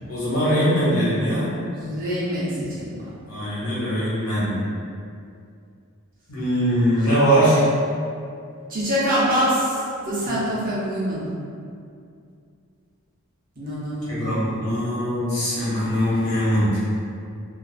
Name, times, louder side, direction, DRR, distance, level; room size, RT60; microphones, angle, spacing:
voice 1, 0.1-1.5 3.3-4.6 6.3-7.6 10.2-10.3 14.1-16.8, equal, 85° left, -9 dB, 1.0 m, -21 dB
voice 2, 1.7-3.0 8.7-11.3 13.6-14.7, equal, 40° right, -9 dB, 0.7 m, -25 dB
2.4 x 2.3 x 2.3 m, 2.4 s
head